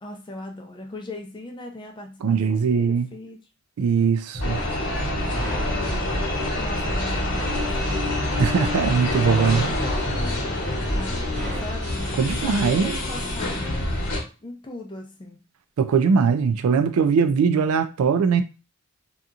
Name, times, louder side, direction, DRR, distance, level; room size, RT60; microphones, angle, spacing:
voice 1, 0.0-3.4 5.7-8.1 9.2-13.9 14.4-15.4, left 1 dB, 20° left, 0.5 m, -38 dB
voice 2, 2.2-3.1 3.8-4.6 8.4-9.6 12.2-13.0 15.8-18.4, right 6 dB, 85° right, 0.4 m, -20 dB
sound 1, 4.3-12.3, equal, 65° right, 1.0 m, -33 dB
sound 2, 4.4-14.2, left 1 dB, 70° left, 0.9 m, -26 dB
2.8 x 2.4 x 2.4 m
head